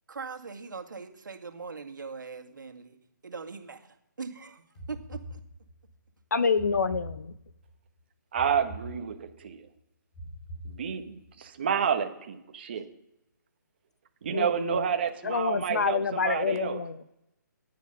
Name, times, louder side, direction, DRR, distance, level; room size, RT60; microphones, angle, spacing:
voice 1, 0.1-3.0 3.2-5.4, right 5 dB, 75° right, 5 dB, 2.0 m, -41 dB
sound 1, 4.8-5.9 6.6-7.7 8.4-9.5 10.1-11.3, right 1 dB, 25° left, 3.0 m, -44 dB
voice 2, 6.3-7.3 14.3-14.8 15.2-17.0, left 5 dB, 60° left, 13 dB, 0.9 m, -27 dB
voice 3, 8.3-9.7 10.6-12.8 14.2-16.8, right 7 dB, 30° right, 6 dB, 1.2 m, -30 dB
9.8 x 9.4 x 5.4 m, 0.86 s
hypercardioid pair, 170°, 10 cm